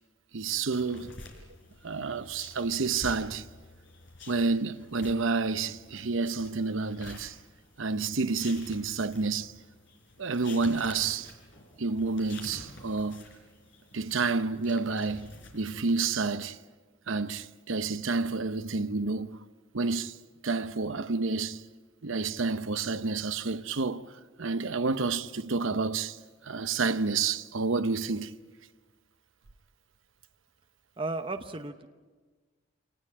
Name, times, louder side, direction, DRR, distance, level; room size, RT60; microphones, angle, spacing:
voice 1, 0.3-1.2 1.8-3.4 4.3-7.3 7.8-9.5 10.2-11.3 11.8-13.2 13.9-16.6 17.1-19.4 19.7-20.1 20.4-21.6 22.0-24.0 24.4-26.2 26.5-28.3, right 4 dB, 75° right, 0.8 m, -29 dB
sound 1, 0.7-16.3, left 2 dB, 60° left, 4.5 m, -49 dB
voice 2, 31.0-31.9, right 2 dB, 25° right, 0.8 m, -34 dB
26.0 x 19.5 x 8.8 m
head